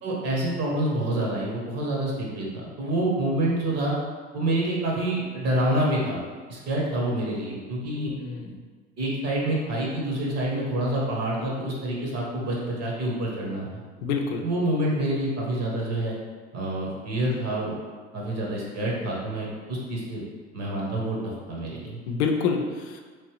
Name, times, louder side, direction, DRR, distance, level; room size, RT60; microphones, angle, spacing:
voice 1, 0.0-3.9 4.3-6.2 6.5-8.1 9.0-13.8 14.4-16.1 16.5-17.7 18.1-20.2 20.5-21.2 21.5-22.0, right 1 dB, 50° right, -3 dB, 1.2 m, -27 dB
voice 2, 7.9-8.6 14.0-14.4 22.1-23.0, left 5 dB, 75° left, 4 dB, 0.5 m, -27 dB
3.2 x 2.5 x 3.2 m, 1.5 s
hypercardioid pair, 65°, 34 cm